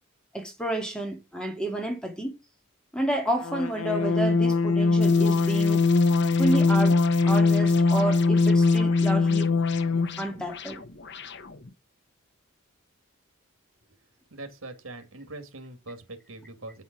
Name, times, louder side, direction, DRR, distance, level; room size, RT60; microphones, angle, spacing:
voice 1, 0.3-2.4 2.9-5.9 6.4-9.5 10.2-10.8, right 1 dB, 5° left, 2.0 m, -30 dB
sound 1, 3.4-10.2, left 3 dB, 80° left, 0.6 m, -21 dB
sound 2, 5.0-11.7, left 7 dB, 55° left, 1.1 m, -42 dB
voice 2, 14.3-16.8, right 2 dB, 70° right, 2.2 m, -42 dB
9.1 x 5.5 x 6.0 m
head